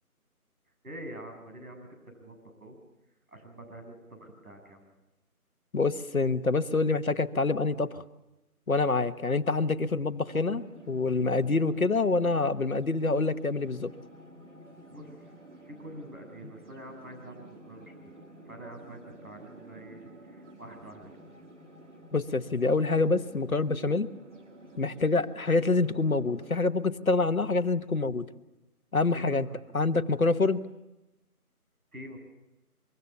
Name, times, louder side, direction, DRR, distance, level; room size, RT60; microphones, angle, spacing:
voice 1, 0.8-1.9 2.2-2.8 3.3-4.9 14.9-15.2 15.7-18.1 18.5-21.1 29.1-30.3 31.9-32.2, right 1 dB, 70° right, 4 dB, 7.0 m, -46 dB
voice 2, 5.7-8.0 8.7-13.9 22.1-24.1 24.8-28.3 28.9-29.5 29.7-30.6, left 3 dB, 65° left, 10 dB, 1.2 m, -26 dB
sound 1, 10.2-26.7, right 1 dB, 50° right, 2.1 m, -51 dB
24.0 x 23.5 x 6.9 m, 0.99 s
figure-of-eight pair, 180°, 45 cm